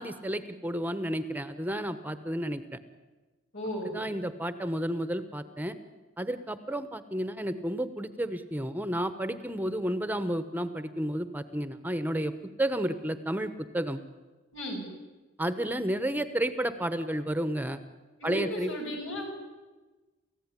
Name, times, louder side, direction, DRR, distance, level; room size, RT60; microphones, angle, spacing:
voice 1, 0.0-2.8 3.8-5.8 6.2-12.3 12.6-14.0 15.4-17.8 18.2-18.7, right 1 dB, 10° right, 11 dB, 1.1 m, -31 dB
voice 2, 3.5-4.0 14.5-14.8 18.2-19.2, equal, 80° left, 1 dB, 8.0 m, -35 dB
29.5 x 15.0 x 9.9 m, 1.2 s
head